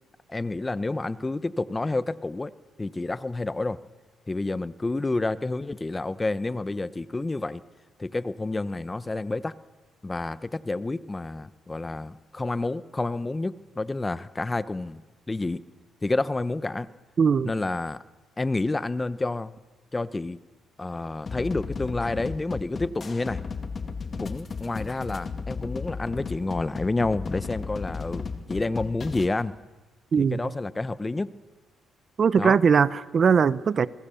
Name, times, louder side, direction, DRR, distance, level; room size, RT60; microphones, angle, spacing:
voice 1, 0.3-3.8 4.3-7.6 8.0-9.5 10.0-15.0 15.3-15.6 16.0-16.9 17.4-18.0 18.4-19.5 19.9-20.4 20.8-23.4 24.2-29.5 30.2-31.3 32.4-32.6, left 2 dB, 20° left, 0.9 m, -29 dB
voice 2, 17.2-17.5 30.1-30.4 32.2-33.9, right 6 dB, 45° right, 0.9 m, -20 dB
sound 1, 21.3-29.3, left 5 dB, 40° left, 2.2 m, -35 dB
28.0 x 21.5 x 7.1 m
cardioid pair, 90°, 0 cm